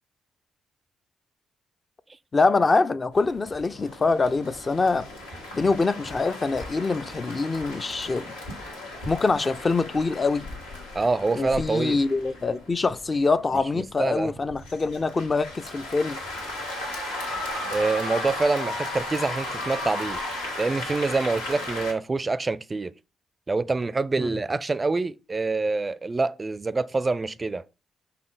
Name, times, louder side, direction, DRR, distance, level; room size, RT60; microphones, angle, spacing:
voice 1, 2.3-5.1 5.5-8.3 9.1-10.5 11.3-16.2 24.2-24.4, left 3 dB, 30° left, 0.5 m, -24 dB
sound 1, 3.1-21.9, left 1 dB, 80° left, 1.5 m, -35 dB
voice 2, 10.9-12.0 13.8-14.3 17.7-20.2 20.6-22.9 23.5-27.6, right 3 dB, 25° right, 0.4 m, -26 dB
5.8 x 3.7 x 5.0 m
figure-of-eight pair, 40°, 0 cm